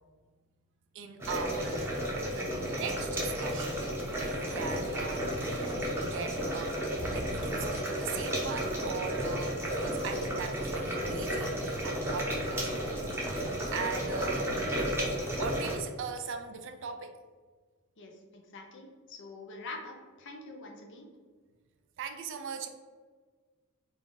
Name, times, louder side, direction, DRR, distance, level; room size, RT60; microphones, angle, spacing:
voice 1, 0.9-2.0 2.4-5.7 6.0-11.6 11.8-14.7 15.4-17.2 22.0-22.7, right 6 dB, 55° right, 7 dB, 0.4 m, -40 dB
sound 1, 1.2-15.8, equal, 10° right, 0.7 m, -33 dB
voice 2, 18.0-21.1, left 3 dB, 55° left, 2 dB, 0.6 m, -45 dB
3.5 x 2.5 x 3.8 m, 1.5 s
head